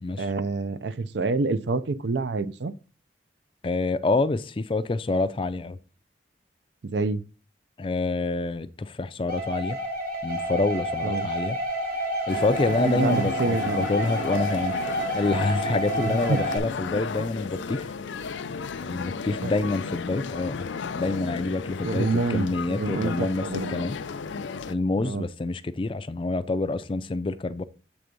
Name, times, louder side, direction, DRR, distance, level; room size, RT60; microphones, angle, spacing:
voice 1, 0.2-2.7 6.8-7.2 11.0-11.3 12.8-13.9 15.9-16.4 17.2-17.3 19.3-19.5 21.8-23.8 25.0-25.2, right 3 dB, 70° right, 0.5 m, -27 dB
voice 2, 3.6-5.8 7.8-9.8 10.2-11.6 12.3-14.7 15.1-17.8 18.8-20.7 20.9-24.0 24.7-27.6, left 3 dB, 30° left, 0.4 m, -27 dB
sound 1, 9.3-16.6, equal, 50° right, 1.6 m, -29 dB
sound 2, 12.3-24.7, left 5 dB, 90° left, 0.5 m, -34 dB
8.0 x 3.4 x 5.2 m
head